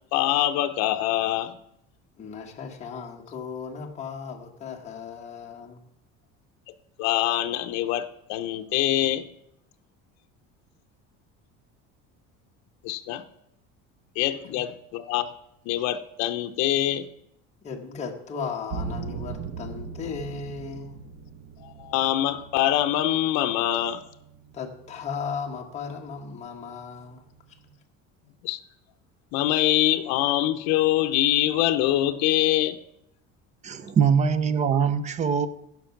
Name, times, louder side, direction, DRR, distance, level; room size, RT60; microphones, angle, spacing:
voice 1, 0.1-1.6 7.0-9.2 12.8-13.2 14.2-15.3 15.7-17.1 21.6-24.0 28.4-28.6 29.3-32.8, left 13 dB, 65° left, 7 dB, 0.7 m, -24 dB
voice 2, 2.2-5.8 14.5-14.6 17.6-21.0 24.5-27.3, left 5 dB, 25° left, 0 dB, 1.3 m, -36 dB
sound 1, 18.7-27.8, right 5 dB, 55° right, 1.1 m, -41 dB
voice 3, 33.6-35.5, right 6 dB, 25° right, 13 dB, 0.6 m, -22 dB
15.0 x 6.0 x 5.8 m, 0.78 s
cardioid pair, 165°, 29 cm